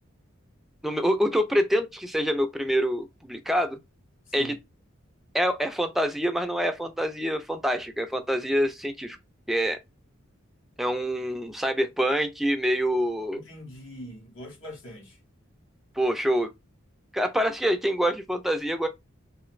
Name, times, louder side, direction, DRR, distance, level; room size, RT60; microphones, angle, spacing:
voice 1, 0.8-3.8 4.3-4.5 5.3-9.2 9.5-9.8 10.8-13.4 16.0-16.5 17.1-18.9, equal, ahead, 0.3 m, -26 dB
voice 2, 4.3-4.6 13.3-15.2, equal, 65° left, 1.1 m, -43 dB
2.5 x 2.4 x 3.1 m
head